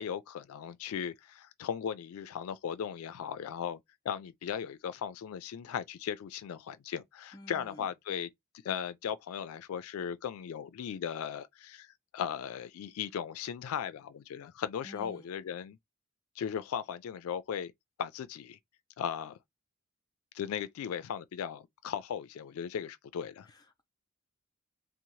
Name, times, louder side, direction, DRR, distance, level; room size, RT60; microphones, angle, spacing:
voice 1, 0.0-3.8 4.0-8.3 8.6-15.8 16.4-17.7 18.0-18.6 19.0-19.4 20.3-23.5, left 8 dB, 90° left, 0.3 m, -37 dB
voice 2, 7.3-7.9 14.8-15.3 23.5-23.8, left 1 dB, 20° left, 0.5 m, -51 dB
2.7 x 2.0 x 3.0 m
head